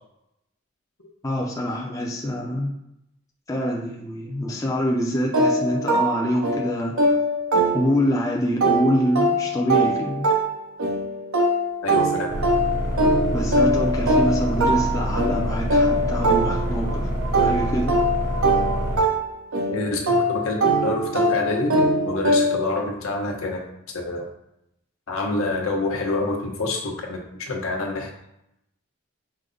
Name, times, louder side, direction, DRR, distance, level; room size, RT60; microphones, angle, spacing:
voice 1, 1.2-2.7 3.5-6.9 7.7-10.3 13.3-17.9, equal, 15° left, -2 dB, 0.4 m, -25 dB
sound 1, 5.3-8.2 8.6-17.0 17.3-22.8, right 1 dB, 80° right, 0.7 m, -22 dB
voice 2, 11.8-12.3 19.7-23.6 24.1-24.3 25.1-27.2 27.5-28.1, left 2 dB, 80° left, 0 dB, 0.8 m, -27 dB
sound 2, 12.3-19.0, equal, 35° right, 0.8 m, -26 dB
4.8 x 2.1 x 3.8 m, 0.83 s
head